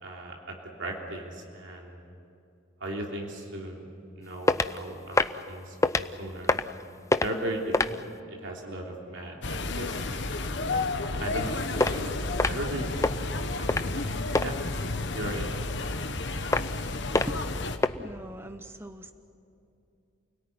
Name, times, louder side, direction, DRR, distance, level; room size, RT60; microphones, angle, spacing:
voice 1, 0.0-2.0 2.8-3.9 4.2-6.6 7.2-10.2 11.2-11.5 11.8-12.1 12.4-12.9 13.4-13.7 13.9-14.1 14.4-14.6 15.1-15.5, right 1 dB, 65° right, -1 dB, 3.4 m, -37 dB
sound 1, 4.5-4.8 5.1-5.4 5.8-6.1 6.4-6.8 7.1-7.3 7.7-8.0 11.8-11.9 12.4-12.7 13.0-13.2 13.7-14.0 14.3-14.5 16.5-16.8 17.1-17.4 17.8-17.9, left 2 dB, 15° left, 0.5 m, -24 dB
sound 2, 9.4-17.8, left 2 dB, 60° left, 1.4 m, -31 dB
voice 2, 17.9-19.1, right 1 dB, 10° right, 8 dB, 0.8 m, -40 dB
29.0 x 18.0 x 9.6 m, 2.6 s
head